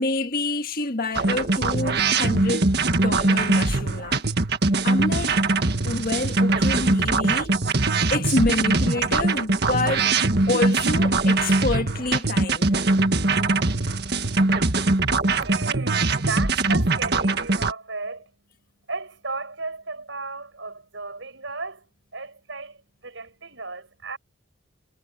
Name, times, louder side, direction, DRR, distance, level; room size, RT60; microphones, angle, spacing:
voice 1, 0.0-4.2 4.8-5.3 5.8-7.5 8.1-10.1 10.5-12.7, left 2 dB, 50° left, 1.7 m, -27 dB
sound 1, 1.1-17.7, right 3 dB, 55° right, 1.8 m, -22 dB
voice 2, 14.4-18.3 18.9-21.8 22.1-22.8 23.0-24.2, right 3 dB, 70° right, 5.7 m, -35 dB
head